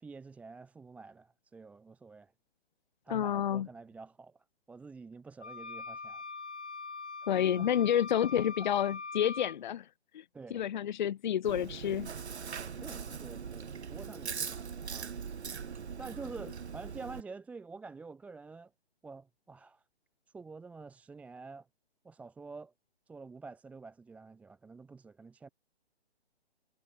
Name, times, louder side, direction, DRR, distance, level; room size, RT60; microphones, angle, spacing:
voice 1, 0.0-2.3 3.0-4.3 4.7-6.2 7.5-7.7 10.3-10.6 12.6-14.6 14.9-15.4 16.0-18.7 19.0-19.8 20.3-21.7 22.0-22.7 23.1-25.5, right 4 dB, 5° right, 1.0 m, -48 dB
voice 2, 3.1-3.7 7.3-9.9 10.1-10.2 10.5-12.1, left 10 dB, 45° left, 1.1 m, -29 dB
sound 1, 5.4-9.6, left 4 dB, 85° left, 2.5 m, -42 dB
Chewing mastication, 11.4-17.2, right 6 dB, 75° right, 1.3 m, -41 dB
figure-of-eight pair, 145°, 33 cm